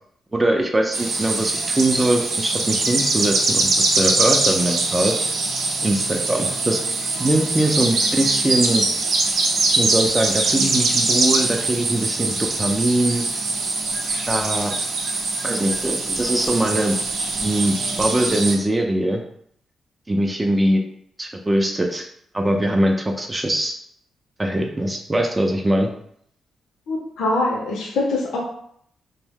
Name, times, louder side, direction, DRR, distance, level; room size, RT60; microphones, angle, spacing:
voice 1, 0.3-5.1 5.8-6.8 7.2-8.9 9.8-13.2 14.3-14.7 15.4-17.0 17.4-19.2 20.1-20.8 21.2-22.0 22.3-23.7 24.4-25.9, right 1 dB, 15° right, 2 dB, 0.4 m, -21 dB
sound 1, 0.9-18.6, right 3 dB, 70° right, 0.5 m, -22 dB
voice 2, 26.9-28.4, left 2 dB, 80° left, -1 dB, 0.5 m, -23 dB
2.6 x 2.0 x 3.5 m, 0.68 s
cardioid pair, 85°, 0 cm